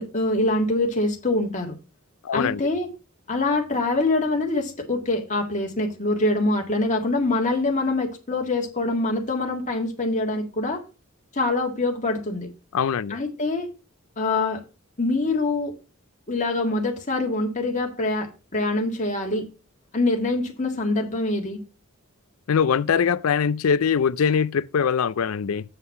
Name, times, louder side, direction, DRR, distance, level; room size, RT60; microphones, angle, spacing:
voice 1, 0.0-1.7 2.3-2.9 3.3-10.8 11.3-12.5 13.1-13.7 14.2-14.6 15.0-15.7 16.3-19.5 19.9-21.6, left 2 dB, 35° left, 1.9 m, -24 dB
voice 2, 2.2-2.6 12.7-13.2 22.5-25.6, left 6 dB, 75° left, 0.4 m, -22 dB
8.1 x 5.6 x 5.5 m
head